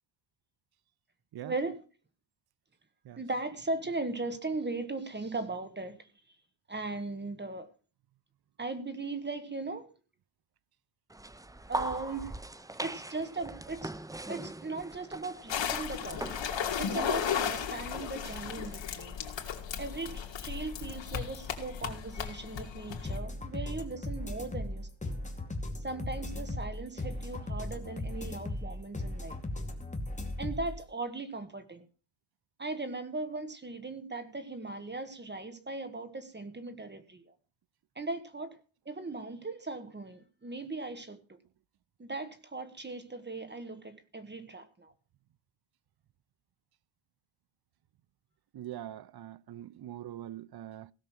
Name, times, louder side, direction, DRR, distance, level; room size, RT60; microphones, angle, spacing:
voice 1, 1.4-1.8 3.2-6.1 6.7-7.7 8.6-9.9 11.7-12.3 12.8-13.9 14.3-16.3 16.8-19.2 19.8-25.1 25.8-29.4 30.4-31.9 32.6-37.3 37.9-38.6 38.8-41.4 42.0-44.9, right 3 dB, 25° right, 1.5 m, -38 dB
sound 1, 11.1-18.8, right 2 dB, 10° right, 0.6 m, -42 dB
sound 2, 15.5-23.2, left 8 dB, 70° left, 2.5 m, -35 dB
sound 3, 23.0-30.8, left 1 dB, 15° left, 2.5 m, -37 dB
voice 2, 48.5-50.9, right 12 dB, 55° right, 0.7 m, -43 dB
17.0 x 6.6 x 6.1 m
wide cardioid pair, 125°, 46 cm